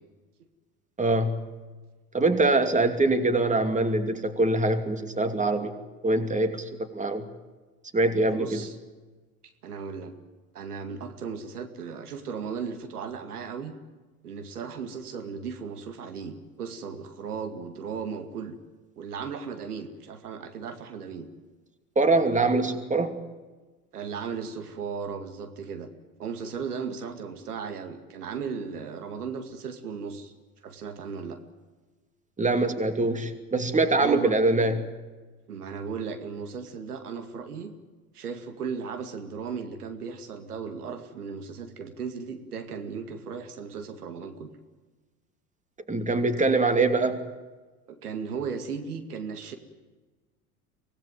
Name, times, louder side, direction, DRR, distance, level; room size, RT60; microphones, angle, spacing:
voice 1, 1.0-1.5 2.1-5.7 6.0-7.2 7.9-8.6 22.0-23.2 32.4-34.8 45.9-47.2, right 2 dB, 15° right, 9 dB, 2.7 m, -24 dB
voice 2, 8.2-8.8 9.6-10.1 10.5-13.8 14.2-18.6 19.0-21.3 23.9-25.9 26.2-30.3 30.6-31.4 34.0-34.3 35.5-37.7 38.1-44.5 47.9-49.6, right 6 dB, 85° right, 8 dB, 2.3 m, -36 dB
24.5 x 18.5 x 9.2 m, 1.3 s
hypercardioid pair, 75°, 45 cm